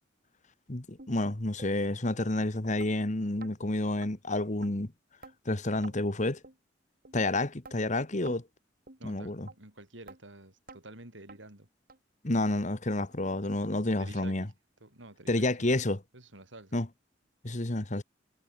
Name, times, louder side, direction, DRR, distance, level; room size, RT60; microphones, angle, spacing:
voice 1, 0.7-4.9 5.4-6.4 7.1-8.4 9.0-9.5 12.2-14.5 15.3-16.0 16.7-16.9 17.4-18.0, left 2 dB, 40° left, 1.6 m, -29 dB
sound 1, 1.0-1.1 1.6-1.7 2.2-2.3 2.8-2.9 3.4-3.5 4.0-4.1 4.6-4.7 5.2-5.4 5.8-6.0 6.4-6.6 7.1-7.2 7.6-7.8 8.3-8.4 8.9-9.0 9.5-9.6 10.1-10.2 10.7-10.8 11.3-11.4 11.9-12.0 12.5-12.6 13.1-13.2 13.7-13.8, right 3 dB, 50° right, 2.6 m, -49 dB
voice 2, 9.0-11.7 14.0-14.5 14.8-15.7 16.1-16.8, right 2 dB, 80° right, 6.2 m, -50 dB
head